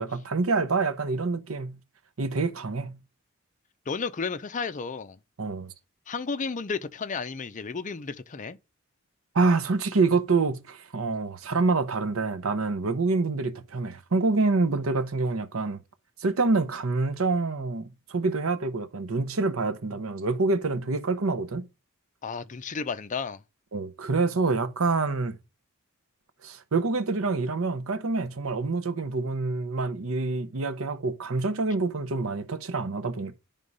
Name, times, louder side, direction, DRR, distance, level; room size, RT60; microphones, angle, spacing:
voice 1, 0.0-1.8 2.2-3.0 5.4-5.7 9.3-15.8 16.2-21.6 23.7-25.4 26.4-33.4, right 3 dB, 75° right, 0.8 m, -26 dB
voice 2, 3.9-5.2 6.1-8.6 22.2-23.4, left 5 dB, 35° left, 0.5 m, -32 dB
11.0 x 3.7 x 5.4 m
head